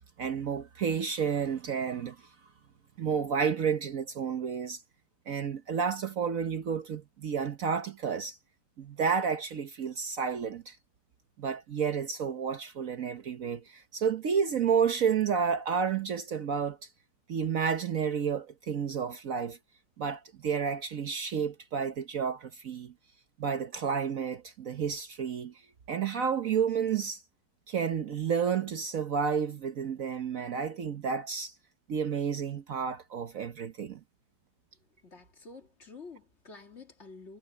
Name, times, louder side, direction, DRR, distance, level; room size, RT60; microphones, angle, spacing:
voice 1, 0.2-2.2 3.0-4.8 5.3-8.4 8.8-10.8 11.4-16.8 17.3-19.6 20.0-22.9 23.4-25.5 25.9-27.2 27.7-31.5 31.9-34.0, right 6 dB, 55° right, 1.2 m, -31 dB
voice 2, 35.0-37.4, left 4 dB, 40° left, 2.2 m, -49 dB
omnidirectional pair, 1.9 m